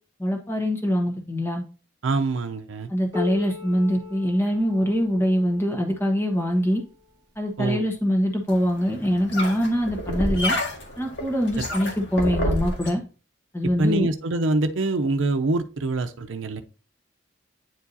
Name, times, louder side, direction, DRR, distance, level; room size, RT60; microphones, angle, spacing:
voice 1, 0.2-1.6 2.9-6.8 7.4-10.6 11.0-13.0 13.5-14.1, equal, 15° left, 2 dB, 1.3 m, -23 dB
voice 2, 2.0-2.9 7.6-7.8 13.6-16.6, right 2 dB, 90° right, 7 dB, 0.6 m, -25 dB
Piano, 3.1-8.4 9.3-9.4 9.9-10.0 10.8-10.9 11.9-12.0, left 7 dB, 20° right, 1.1 m, -40 dB
sound 1, 8.5-12.9, equal, 65° left, 1.9 m, -29 dB
9.3 x 4.7 x 2.7 m, 0.35 s
head